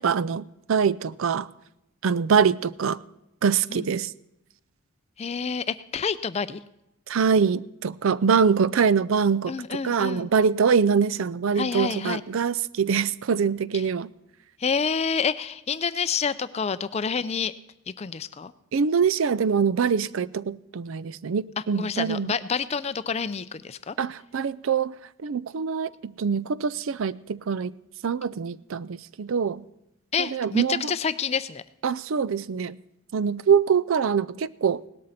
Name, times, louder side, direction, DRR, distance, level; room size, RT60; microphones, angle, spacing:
voice 1, 0.0-1.5 2.0-3.0 3.4-4.1 7.1-14.1 18.7-22.4 24.0-25.0 25.2-27.7 28.0-29.6 30.3-30.9 31.8-32.8 33.1-34.8, right 6 dB, 65° right, 0.4 m, -24 dB
voice 2, 5.2-6.6 9.5-10.3 11.5-12.2 13.7-13.9 14.6-17.5 18.0-18.5 21.6-24.0 30.1-31.6, left 6 dB, 30° left, 0.4 m, -28 dB
18.0 x 13.0 x 4.2 m
head